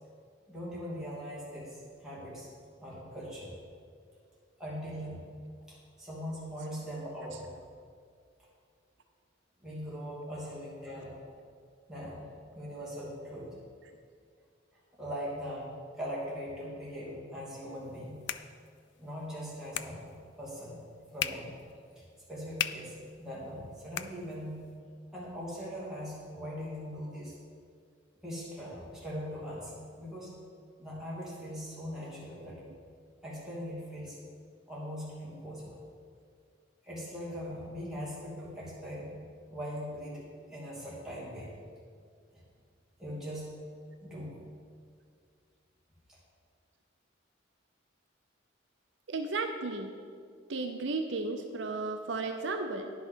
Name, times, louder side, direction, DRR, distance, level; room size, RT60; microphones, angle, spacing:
voice 1, 0.5-1.7 2.0-2.5 2.8-3.6 4.6-5.3 5.7-7.5 9.6-11.2 11.9-12.2 12.5-13.5 15.0-18.2 19.0-20.8 21.1-21.6 22.3-24.6 25.1-27.4 28.2-30.3 30.8-32.6 33.2-34.2 34.7-35.8 36.8-39.1 39.5-41.5 43.0-43.5 44.0-44.4, equal, 5° right, -8 dB, 2.7 m, -40 dB
sound 1, 17.7-24.8, left 10 dB, 60° left, 0.4 m, -41 dB
voice 2, 49.1-49.9 50.5-52.9, right 3 dB, 65° right, 5 dB, 0.6 m, -34 dB
10.0 x 5.6 x 6.3 m, 2.2 s
head